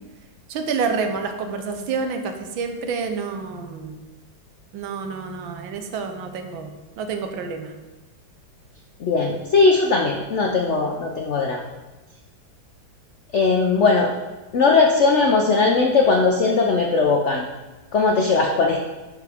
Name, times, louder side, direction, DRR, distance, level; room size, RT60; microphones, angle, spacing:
voice 1, 0.5-4.0 4.7-7.7, right 5 dB, 85° right, 6 dB, 1.6 m, -28 dB
voice 2, 9.0-11.6 13.3-14.1 14.5-17.4 17.9-18.8, left 4 dB, 90° left, 1 dB, 0.6 m, -19 dB
11.0 x 4.6 x 3.5 m, 1.2 s
omnidirectional pair, 2.1 m